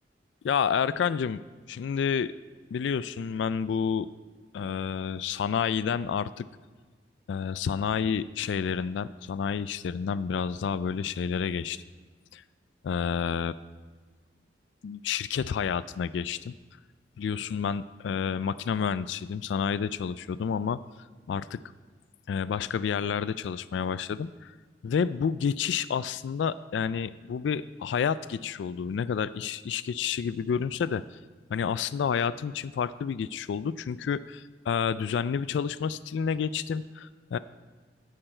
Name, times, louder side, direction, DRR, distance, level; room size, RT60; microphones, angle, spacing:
voice 1, 0.4-1.4 1.7-2.3 2.7-4.1 4.5-6.5 7.3-11.8 12.3-12.4 12.8-13.5 14.8-16.5 17.2-20.8 21.3-21.6 22.3-24.5 24.8-31.0 31.5-37.4, left 7 dB, 75° left, 16 dB, 0.3 m, -29 dB
16.5 x 6.7 x 4.4 m, 1.4 s
head